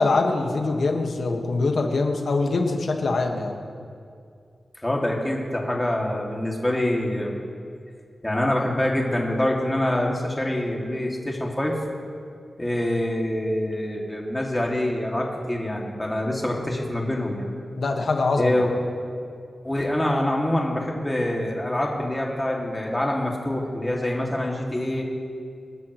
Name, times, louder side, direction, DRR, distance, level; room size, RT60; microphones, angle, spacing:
voice 1, 0.0-3.6 17.8-18.6, left 3 dB, 75° left, 2 dB, 1.7 m, -23 dB
voice 2, 4.8-7.4 8.2-11.8 12.6-17.5 18.4-18.7 19.6-25.0, left 1 dB, 15° left, -1 dB, 2.5 m, -25 dB
27.5 x 10.5 x 3.2 m, 2.3 s
wide cardioid pair, 75°, 0 cm